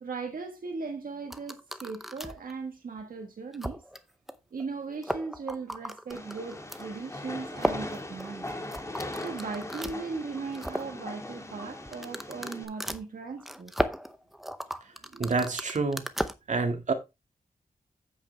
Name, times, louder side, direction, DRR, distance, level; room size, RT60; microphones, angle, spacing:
voice 1, 0.0-3.8 4.5-8.5 9.2-13.7, right 4 dB, 70° right, 1.5 m, -38 dB
sound 1, 1.3-2.5 3.0-3.1 3.5-4.0 4.3-4.4 4.6-4.7 4.9-6.8 7.6-10.0 10.4-10.9 11.8-16.3, equal, ahead, 0.7 m, -35 dB
Train, 6.1-12.6, left 1 dB, 20° left, 1.8 m, -40 dB
voice 2, 15.1-16.0 16.5-16.9, right 4 dB, 55° right, 2.0 m, -27 dB
9.0 x 8.0 x 3.3 m
wide cardioid pair, 135°, 15 cm